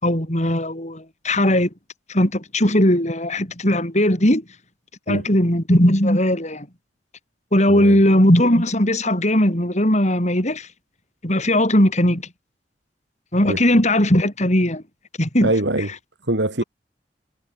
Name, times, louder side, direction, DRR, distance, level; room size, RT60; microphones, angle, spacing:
voice 1, 0.0-1.7 2.1-4.4 5.1-6.7 7.5-10.7 11.2-12.2 13.3-14.8 15.2-15.5, left 1 dB, 40° left, 6.6 m, -18 dB
voice 2, 7.7-8.0 13.4-13.6 15.4-15.9 16.3-16.6, right 1 dB, 85° right, 3.8 m, -22 dB
head